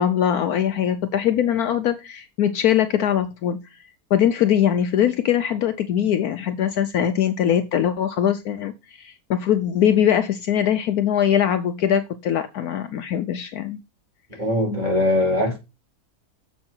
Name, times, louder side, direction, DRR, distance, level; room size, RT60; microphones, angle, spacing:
voice 1, 0.0-3.6 4.1-8.7 9.0-13.8, left 9 dB, 70° left, 1.1 m, -21 dB
voice 2, 14.4-15.6, left 1 dB, 25° right, 5.2 m, -21 dB
7.2 x 5.7 x 4.4 m
omnidirectional pair, 1.8 m